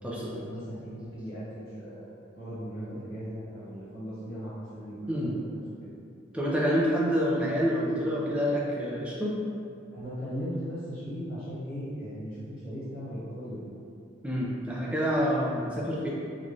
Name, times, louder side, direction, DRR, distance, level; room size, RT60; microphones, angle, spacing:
voice 1, 0.0-2.1 2.3-5.9 9.9-13.8, equal, 75° left, -11 dB, 1.3 m, -38 dB
voice 2, 6.3-9.4 14.2-16.1, equal, 5° right, -5 dB, 0.4 m, -27 dB
3.3 x 2.4 x 2.5 m, 2.3 s
head